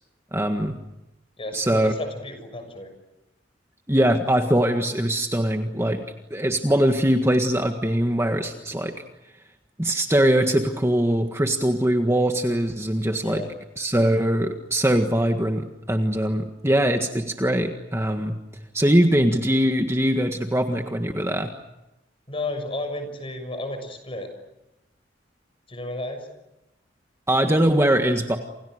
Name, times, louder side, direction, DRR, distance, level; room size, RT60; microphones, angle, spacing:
voice 1, 0.3-0.8 1.5-1.9 3.9-6.0 6.3-8.9 9.8-13.4 13.8-18.3 18.7-21.5 27.3-28.4, right 1 dB, 15° right, 4 dB, 1.7 m, -22 dB
voice 2, 1.4-2.9 13.2-13.5 22.3-24.3 25.7-26.3, left 2 dB, 30° left, 7 dB, 6.7 m, -33 dB
29.0 x 28.5 x 6.6 m, 0.93 s
head